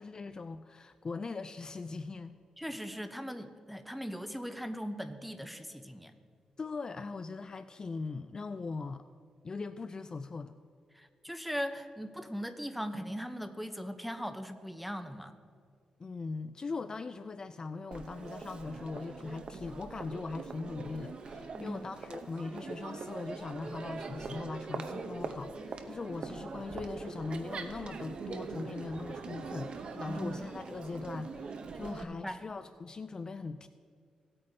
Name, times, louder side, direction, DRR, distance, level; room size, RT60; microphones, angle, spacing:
voice 1, 0.0-2.4 6.6-9.1 9.4-10.5 16.0-33.7, left 4 dB, 35° left, 11 dB, 0.3 m, -40 dB
voice 2, 2.6-6.1 10.9-15.3 21.6-21.9 30.1-30.5 32.0-32.4, equal, ahead, 8 dB, 0.8 m, -39 dB
Crowd, 17.9-32.0, right 4 dB, 55° right, 0.8 m, -42 dB
17.5 x 8.7 x 2.7 m, 2.1 s
cardioid pair, 80°, 2 cm